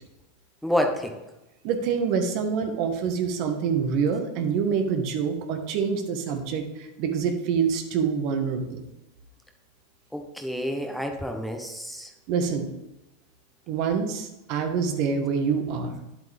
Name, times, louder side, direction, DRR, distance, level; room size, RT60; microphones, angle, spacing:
voice 1, 0.6-1.2 10.1-12.1, equal, ahead, 4 dB, 1.1 m, -28 dB
voice 2, 1.6-8.8 12.3-12.7 13.7-16.0, right 6 dB, 55° right, 4 dB, 1.5 m, -26 dB
9.9 x 7.8 x 3.5 m, 0.98 s
hypercardioid pair, 110°, 0 cm